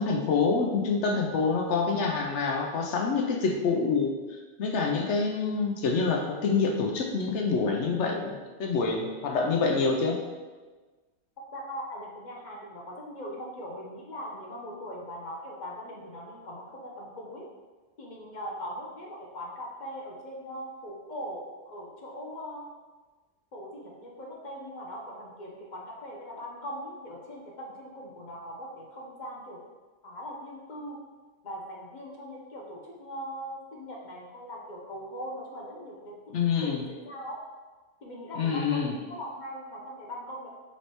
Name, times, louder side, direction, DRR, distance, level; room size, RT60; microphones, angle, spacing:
voice 1, 0.0-4.1 4.6-10.2 36.3-36.8 38.4-38.9, left 4 dB, 75° left, 1 dB, 0.9 m, -26 dB
voice 2, 11.5-17.5 18.0-22.7 23.5-29.6 30.0-31.0 31.4-36.3 36.6-37.4 38.0-40.5, equal, 45° left, -2 dB, 0.8 m, -40 dB
5.4 x 3.3 x 3.0 m, 1.3 s
omnidirectional pair, 1.2 m